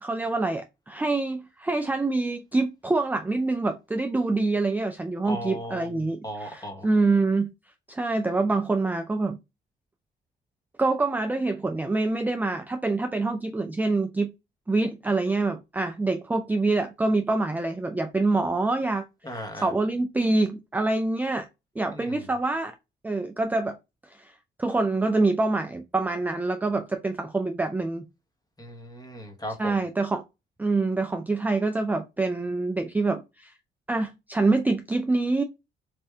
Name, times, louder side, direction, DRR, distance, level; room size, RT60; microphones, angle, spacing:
voice 1, 0.0-7.5 7.9-9.4 10.8-14.3 14.7-19.0 19.3-21.5 21.8-22.7 23.0-23.8 24.0-24.3 24.6-28.1 29.6-30.2 30.6-33.5 33.9-35.4, right 3 dB, 10° right, 0.4 m, -26 dB
voice 2, 5.2-6.9 19.2-19.7 21.9-22.2 28.6-29.7, equal, 20° left, 1.2 m, -37 dB
3.4 x 2.6 x 3.2 m
cardioid pair, 90°, 20 cm